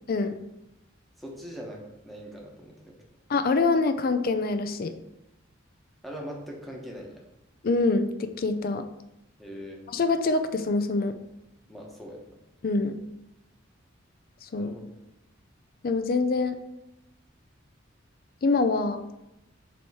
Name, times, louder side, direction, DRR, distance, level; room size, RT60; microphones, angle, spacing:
voice 1, 1.2-3.0 6.0-7.2 9.4-9.8 11.7-12.4 14.6-15.0, equal, ahead, -2 dB, 1.1 m, -41 dB
voice 2, 3.3-4.9 7.6-8.9 9.9-11.2 12.6-13.0 14.5-14.8 15.8-16.6 18.4-19.0, left 3 dB, 50° left, 9 dB, 0.4 m, -25 dB
7.0 x 3.1 x 4.7 m, 0.90 s
head